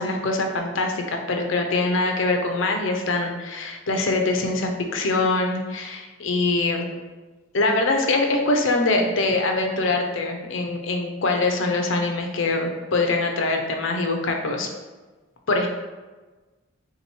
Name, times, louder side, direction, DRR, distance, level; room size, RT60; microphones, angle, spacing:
voice 1, 0.0-6.9 7.5-14.7 15.5-15.7, left 2 dB, 70° left, 3 dB, 0.6 m, -23 dB
3.7 x 2.9 x 4.3 m, 1.3 s
head